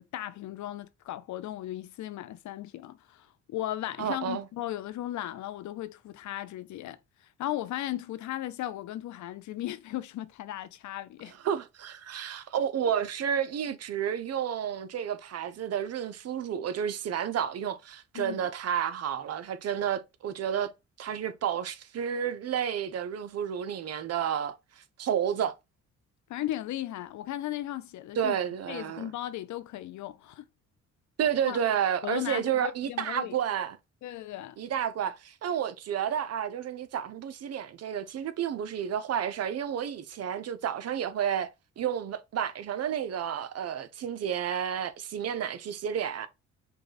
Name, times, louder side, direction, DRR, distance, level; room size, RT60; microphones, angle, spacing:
voice 1, 0.1-7.0 7.4-11.3 18.1-18.4 26.3-28.4 28.7-30.5 31.5-31.6 32.0-33.4 34.0-34.6, left 13 dB, 70° left, 0.6 m, -36 dB
voice 2, 4.0-4.5 11.4-20.7 21.0-25.5 28.2-29.1 31.2-33.8 34.6-41.5 41.8-46.3, right 9 dB, 55° right, 0.7 m, -31 dB
5.3 x 2.3 x 4.0 m
cardioid pair, 90°, 30 cm